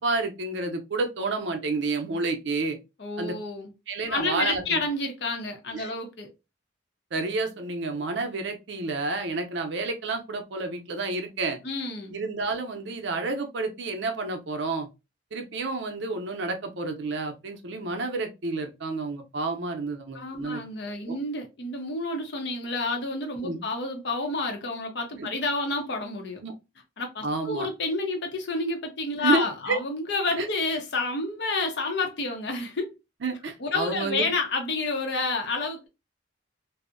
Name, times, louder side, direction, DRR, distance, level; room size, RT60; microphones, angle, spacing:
voice 1, 0.0-2.8 3.2-3.4 3.9-4.8 5.7-5.9 7.1-11.6 12.1-14.9 15.3-20.6 21.1-21.2 23.4-23.6 25.2-25.3 26.4-26.5 27.2-27.7 29.2-29.8 30.4-30.5 33.2-34.3, right 3 dB, 70° right, 0.5 m, -30 dB
voice 2, 3.0-3.7 4.1-6.3 11.6-12.1 20.1-26.4 27.0-32.9 33.6-35.9, left 3 dB, 60° left, 0.6 m, -29 dB
2.6 x 2.0 x 2.4 m
head